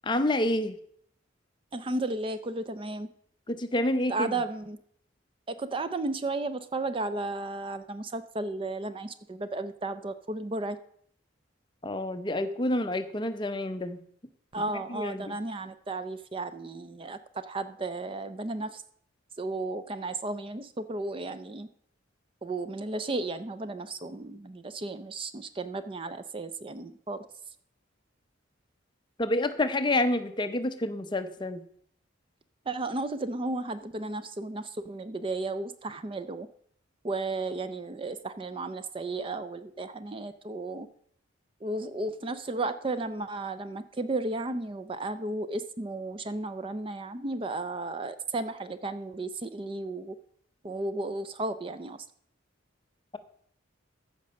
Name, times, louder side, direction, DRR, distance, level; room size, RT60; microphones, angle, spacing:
voice 1, 0.0-0.8 3.5-4.3 11.8-14.0 14.9-15.4 29.2-31.6, left 1 dB, 25° left, 9 dB, 0.6 m, -28 dB
voice 2, 1.7-3.1 4.1-4.8 5.5-10.8 14.5-18.8 19.4-21.7 22.4-27.2 32.7-36.5 37.0-40.9 41.6-50.2 50.6-52.1, right 2 dB, 25° right, 12 dB, 0.4 m, -34 dB
14.0 x 5.2 x 6.3 m, 0.66 s
head